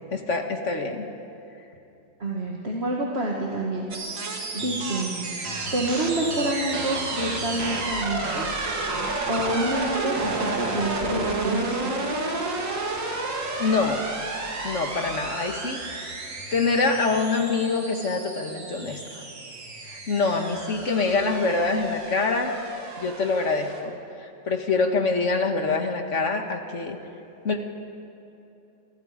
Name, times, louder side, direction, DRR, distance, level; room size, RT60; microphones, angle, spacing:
voice 1, 0.1-1.1 13.6-14.0 14.6-16.1 16.5-19.2 19.9-22.5 23.0-23.9 24.2-27.0 27.4-27.7, left 3 dB, 40° left, 4 dB, 2.1 m, -25 dB
voice 2, 2.2-3.9 4.5-5.1 5.7-8.5 9.3-12.1, right 1 dB, 35° right, -2 dB, 2.2 m, -27 dB
sound 1, 3.9-23.8, right 3 dB, 70° right, 3.0 m, -31 dB
29.5 x 24.5 x 5.2 m, 2.9 s
omnidirectional pair, 2.0 m